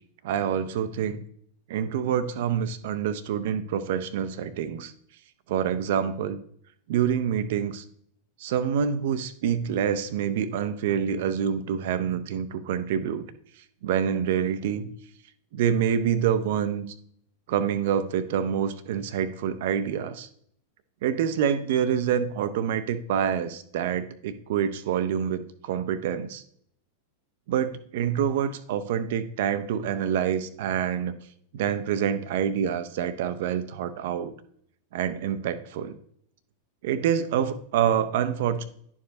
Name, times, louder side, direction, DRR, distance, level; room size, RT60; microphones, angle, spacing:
voice 1, 0.2-1.2 1.7-4.9 5.5-6.4 6.9-7.8 8.4-13.3 13.8-14.9 15.5-16.8 17.5-20.3 21.0-26.4 27.5-31.1 31.5-34.3 34.9-35.9 36.8-38.6, right 8 dB, 55° right, 12 dB, 0.5 m, -26 dB
11.0 x 4.7 x 2.8 m, 0.66 s
figure-of-eight pair, 90°, 0 cm